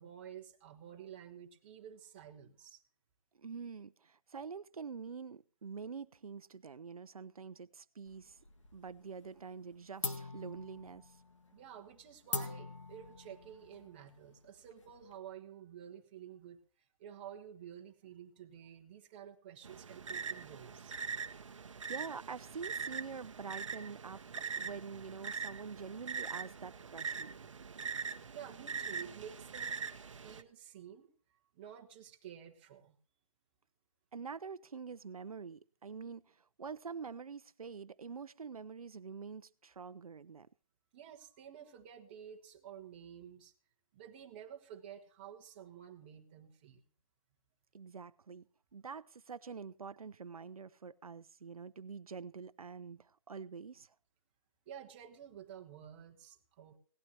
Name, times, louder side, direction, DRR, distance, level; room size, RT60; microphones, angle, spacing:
voice 1, 0.0-2.8 11.5-16.6 17.0-21.0 28.3-33.0 40.9-43.5 43.9-46.8 54.7-56.8, right 9 dB, 20° right, 1.2 m, -51 dB
voice 2, 3.3-8.4 8.7-11.2 21.6-24.2 24.6-27.3 34.1-40.5 47.7-48.5 48.7-53.9, right 5 dB, 85° right, 0.7 m, -46 dB
sound 1, 8.1-9.0 9.3-9.7 10.0-15.2, left 4 dB, 60° left, 1.8 m, -43 dB
sound 2, 19.6-30.4, right 6 dB, 60° right, 1.0 m, -42 dB
18.0 x 12.0 x 2.9 m
hypercardioid pair, 170°, 18 cm